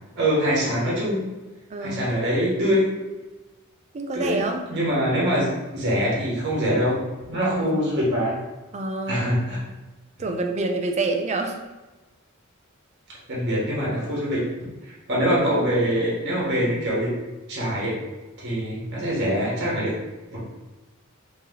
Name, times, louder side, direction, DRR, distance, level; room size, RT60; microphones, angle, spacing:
voice 1, 0.1-1.2 1.8-2.9 4.1-4.4 4.7-7.0 7.3-8.4 9.1-9.6 13.3-14.4 14.9-17.1 17.5-17.9 18.4-19.9 20.3-20.4, equal, 55° right, -5 dB, 1.2 m, -24 dB
voice 2, 1.7-2.1 3.9-4.7 7.4-7.8 8.7-9.3 10.2-11.6, right 2 dB, 30° right, 3 dB, 0.4 m, -27 dB
3.0 x 2.9 x 3.7 m, 1.1 s
head